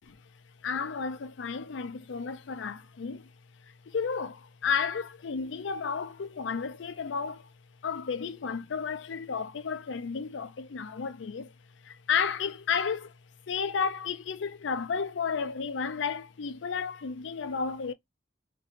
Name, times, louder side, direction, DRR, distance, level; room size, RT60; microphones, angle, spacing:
voice 1, 0.6-3.3 3.9-7.5 7.8-11.5 11.8-13.1 13.5-17.9, left 6 dB, 80° left, 0.5 m, -32 dB
3.0 x 2.6 x 2.7 m
head